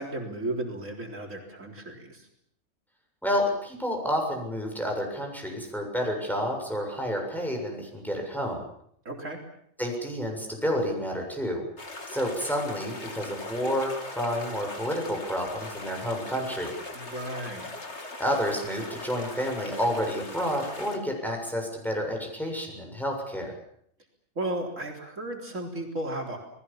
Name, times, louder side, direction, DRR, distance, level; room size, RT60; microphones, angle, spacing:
voice 1, 0.0-2.3 9.1-9.4 17.0-17.7 24.4-26.4, right 1 dB, 70° right, 1 dB, 4.2 m, -34 dB
voice 2, 3.2-8.6 9.8-11.6 12.1-16.7 18.2-23.5, equal, ahead, 1 dB, 7.2 m, -30 dB
sound 1, 11.8-21.0, left 2 dB, 55° left, 3.3 m, -40 dB
29.5 x 20.0 x 7.3 m, 0.68 s
omnidirectional pair, 1.4 m